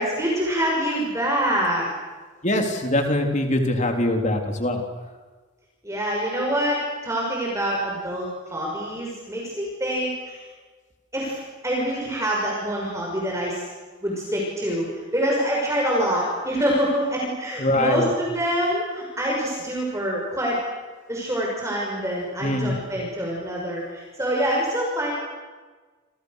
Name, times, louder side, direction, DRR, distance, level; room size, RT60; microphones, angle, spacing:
voice 1, 0.0-1.9 5.8-10.4 11.1-13.7 14.0-14.9 15.1-20.6 21.1-25.1, equal, 15° right, -2 dB, 6.0 m, -25 dB
voice 2, 2.4-4.8 17.6-18.1 22.4-22.7, left 1 dB, 35° left, 3 dB, 3.7 m, -23 dB
28.5 x 28.0 x 6.7 m, 1.4 s
head